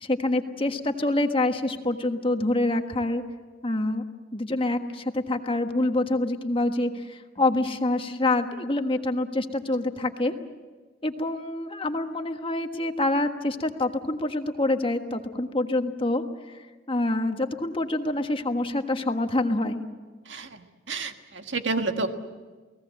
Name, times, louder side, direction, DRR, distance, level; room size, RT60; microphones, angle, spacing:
voice 1, 0.0-3.2 3.6-4.0 4.3-10.3 11.0-16.2 16.9-19.8, left 2 dB, 30° left, 6 dB, 1.4 m, -26 dB
voice 2, 20.3-20.6 20.9-22.1, right 3 dB, 80° right, 6 dB, 1.6 m, -29 dB
29.5 x 18.5 x 7.7 m, 1.4 s
head